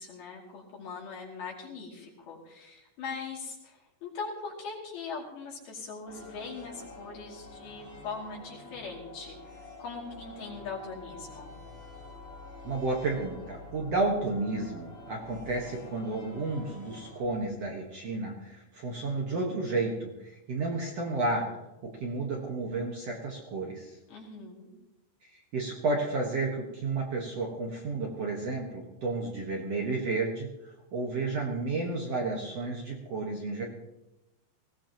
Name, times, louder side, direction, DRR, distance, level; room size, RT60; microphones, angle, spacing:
voice 1, 0.0-11.5 24.1-24.7, left 4 dB, 65° left, -4 dB, 4.5 m, -41 dB
sound 1, 6.1-17.2, left 2 dB, 25° left, 1.3 m, -47 dB
voice 2, 12.6-21.5 21.8-24.0 25.3-33.6, right 3 dB, 55° right, -1 dB, 1.9 m, -32 dB
20.0 x 17.5 x 3.0 m, 0.98 s
omnidirectional pair, 4.8 m